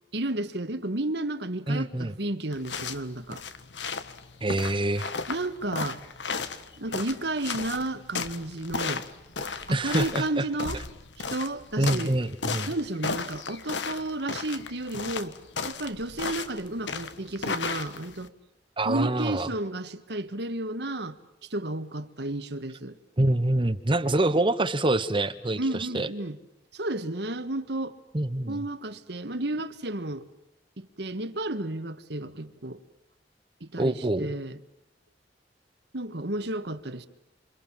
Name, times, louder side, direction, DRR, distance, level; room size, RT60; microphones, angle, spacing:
voice 1, 0.1-3.4 5.3-6.0 6.8-9.1 9.7-10.8 11.3-12.2 12.7-15.4 15.6-18.3 18.8-21.2 21.4-23.0 25.6-26.4 26.7-28.0 28.5-30.2 30.8-32.8 33.6-34.6 35.9-37.1, right 2 dB, 70° right, 1.7 m, -32 dB
voice 2, 1.7-2.1 4.4-5.1 9.7-10.5 11.8-12.7 18.8-19.5 23.2-26.1 28.1-28.6 33.8-34.3, right 1 dB, 30° right, 1.0 m, -26 dB
sound 1, 2.5-18.3, left 4 dB, 85° left, 1.6 m, -35 dB
27.5 x 27.5 x 7.5 m
head